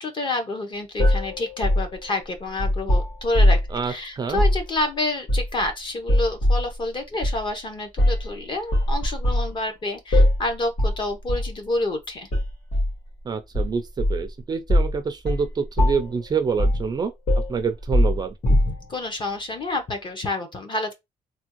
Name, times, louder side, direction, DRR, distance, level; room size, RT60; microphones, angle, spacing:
voice 1, 0.0-3.6 3.9-12.3 18.4-20.9, left 2 dB, 35° left, 0.8 m, -28 dB
sound 1, 1.0-3.8 4.3-4.6 5.3-5.7 6.1-6.7 7.2-7.4 8.0-8.3 8.7-9.5 10.1-10.5 10.8-11.0 11.3-11.5 12.3-12.9 13.5-14.3 14.7-15.0 15.3-15.5 15.8-16.2 16.6-16.9 17.3-18.9, left 1 dB, 75° left, 1.7 m, -21 dB
voice 2, 3.7-4.4 13.3-17.1 17.5-18.3, right 5 dB, 30° right, 0.3 m, -27 dB
3.4 x 2.2 x 2.9 m
wide cardioid pair, 170°, 14 cm